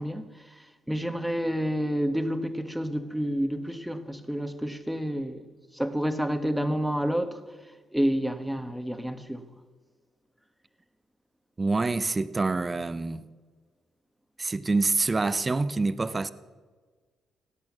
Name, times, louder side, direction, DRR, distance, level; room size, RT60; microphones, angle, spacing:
voice 1, 0.0-5.5 5.7-7.4 7.9-9.4, equal, ahead, 1.3 m, -29 dB
voice 2, 11.6-13.2 14.4-16.3, right 3 dB, 25° right, 0.7 m, -26 dB
17.5 x 8.8 x 7.3 m
cardioid pair, 90°, 0 cm